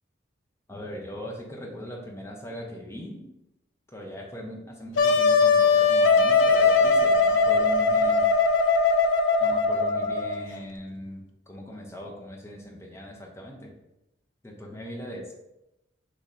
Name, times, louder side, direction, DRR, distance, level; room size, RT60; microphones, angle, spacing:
voice 1, 0.7-3.3 3.9-8.2 9.4-13.7 14.4-15.3, equal, 15° left, -1 dB, 0.6 m, -40 dB
Wind instrument woodwind instrument, 5.0-10.5, left 4 dB, 80° left, 0.4 m, -20 dB
3.1 x 2.8 x 3.8 m, 0.88 s
head